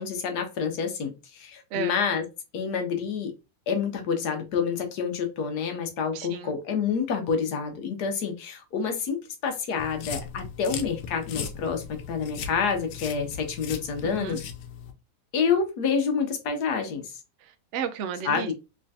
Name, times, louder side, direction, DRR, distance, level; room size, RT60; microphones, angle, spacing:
voice 1, 0.0-2.2 2.5-3.3 3.7-14.4 15.3-17.1 18.2-18.5, left 6 dB, 70° left, 1.3 m, -28 dB
voice 2, 1.7-2.0 6.1-6.5 14.0-14.4 17.4-18.5, right 7 dB, 70° right, 0.7 m, -33 dB
sound 1, 9.8-14.9, left 7 dB, 90° left, 1.3 m, -38 dB
3.4 x 3.2 x 2.7 m
omnidirectional pair, 1.8 m